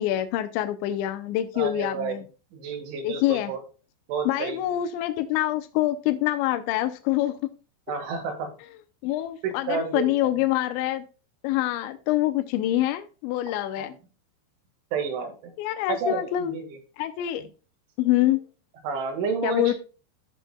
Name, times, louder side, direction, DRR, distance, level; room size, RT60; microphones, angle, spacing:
voice 1, 0.0-2.2 3.0-3.5 4.3-7.5 9.0-11.1 11.4-13.9 15.6-16.6 17.0-17.5 18.0-18.4 19.4-19.7, left 14 dB, 85° left, 2.6 m, -25 dB
voice 2, 1.6-2.2 2.5-3.6 4.1-4.6 7.9-8.5 9.4-10.1 13.8-14.0 14.9-15.5 15.9-16.8 17.4-17.5 18.8-19.7, right 5 dB, 70° right, 3.9 m, -30 dB
13.5 x 6.2 x 2.2 m
omnidirectional pair, 5.9 m